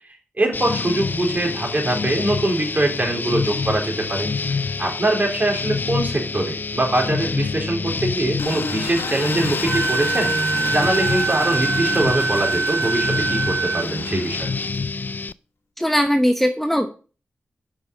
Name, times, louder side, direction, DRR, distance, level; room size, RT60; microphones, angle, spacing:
voice 1, 0.4-4.3 4.8-10.3 10.7-14.5, right 1 dB, 40° right, 0 dB, 3.8 m, -23 dB
sound 1, 0.5-15.3, left 4 dB, 45° left, 0.4 m, -27 dB
Engine, 8.4-14.9, left 3 dB, 80° left, 1.5 m, -30 dB
Wind instrument woodwind instrument, 9.7-13.9, right 5 dB, 60° right, 1.1 m, -24 dB
voice 2, 15.8-16.9, equal, 5° left, 5 dB, 1.0 m, -19 dB
7.0 x 5.7 x 5.4 m, 0.37 s
cardioid pair, 45°, 4 cm